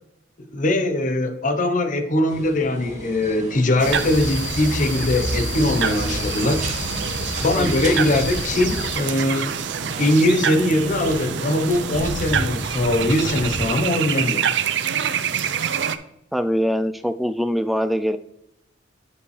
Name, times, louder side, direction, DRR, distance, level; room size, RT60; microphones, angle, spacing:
voice 1, 0.5-6.6 7.4-9.5 10.0-14.4, left 1 dB, 45° left, 8 dB, 0.8 m, -21 dB
sound 1, 2.3-13.7, right 1 dB, 40° right, 1.7 m, -34 dB
sound 2, 3.8-9.0, left 2 dB, 70° left, 1.1 m, -29 dB
sound 3, 3.8-16.0, right 8 dB, 70° right, 0.5 m, -27 dB
voice 2, 16.3-18.2, equal, ahead, 10 dB, 0.3 m, -23 dB
9.4 x 5.3 x 3.2 m, 0.78 s
head